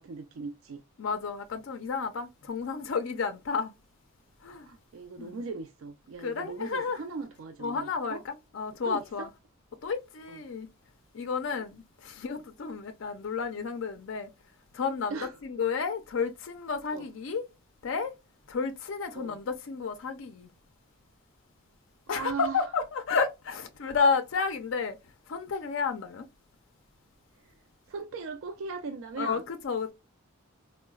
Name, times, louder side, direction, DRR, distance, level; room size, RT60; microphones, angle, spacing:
voice 1, 0.0-0.8 4.7-8.2 8.9-9.3 10.3-10.4 11.5-11.6 15.1-15.3 16.9-17.1 19.1-19.4 22.1-22.6 27.4-27.5 27.9-29.4, right 4 dB, 70° right, 0.4 m, -39 dB
voice 2, 1.0-3.7 4.4-4.7 5.2-5.4 6.2-7.0 7.6-9.3 9.8-10.7 11.1-14.3 14.7-17.5 17.8-18.1 18.5-20.5 22.1-25.0 25.3-26.3 29.2-29.9, left 5 dB, 65° left, 0.4 m, -31 dB
3.8 x 2.1 x 2.2 m
head